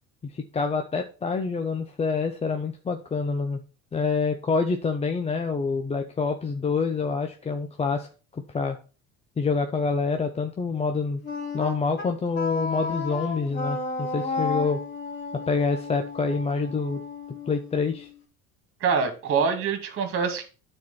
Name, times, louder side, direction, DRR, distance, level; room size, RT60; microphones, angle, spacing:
voice 1, 0.2-3.6 3.9-8.1 8.3-8.8 9.4-11.2 11.5-14.8 15.3-17.0 17.5-18.1, left 4 dB, 20° left, 0.9 m, -27 dB
Wind instrument woodwind instrument, 11.2-18.2, left 3 dB, 35° left, 3.5 m, -33 dB
voice 2, 18.8-20.4, right 5 dB, 45° right, 2.4 m, -25 dB
9.3 x 4.5 x 5.8 m
supercardioid pair, 120°, 30 cm